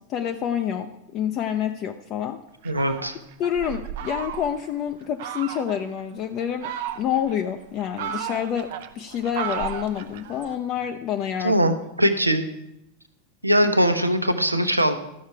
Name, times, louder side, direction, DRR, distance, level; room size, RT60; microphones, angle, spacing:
voice 1, 0.0-2.4 3.4-6.7 7.0-8.7 8.9-11.7 13.6-13.7, left 9 dB, 35° left, 6 dB, 0.6 m, -28 dB
Fowl, 2.6-4.7 5.2-5.8 6.4-7.3 7.8-10.5, right 9 dB, 50° right, 0.6 m, -34 dB
voice 2, 2.6-3.1 11.4-12.4 13.4-14.9, equal, 85° right, 8 dB, 0.8 m, -21 dB
13.0 x 6.5 x 4.6 m, 0.83 s
figure-of-eight pair, 90°, 0 cm